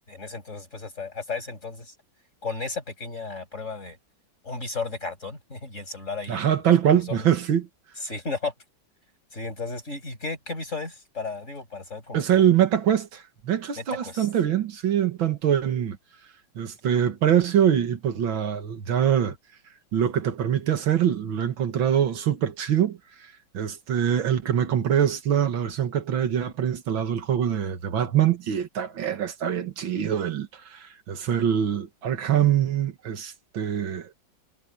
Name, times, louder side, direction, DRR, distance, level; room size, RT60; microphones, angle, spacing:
voice 1, 0.1-1.9 2.4-4.0 4.4-6.6 6.9-7.3 8.0-8.5 9.3-12.5 13.8-14.3, left 4 dB, 35° left, 6.7 m, -34 dB
voice 2, 6.3-7.7 12.1-16.0 16.6-19.4 19.9-23.0 23.5-34.1, right 9 dB, 85° right, 2.3 m, -24 dB
omnidirectional pair, 2.1 m